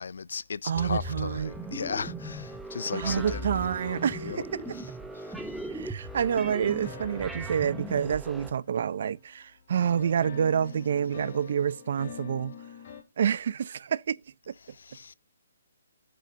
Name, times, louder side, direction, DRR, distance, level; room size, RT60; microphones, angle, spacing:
voice 1, 0.0-3.5 3.8-4.4 5.1-5.6 14.6-15.1, left 5 dB, 70° left, 0.5 m, -36 dB
voice 2, 0.6-1.5 2.9-4.4 5.7-12.5 13.2-14.2, right 8 dB, 50° right, 0.6 m, -28 dB
sound 1, 0.7-8.5, right 1 dB, ahead, 0.8 m, -38 dB
sound 2, 3.0-5.7 6.4-9.4 9.8-13.0, left 7 dB, 40° left, 2.8 m, -47 dB
17.5 x 6.9 x 2.6 m
hypercardioid pair, 165°, 0 cm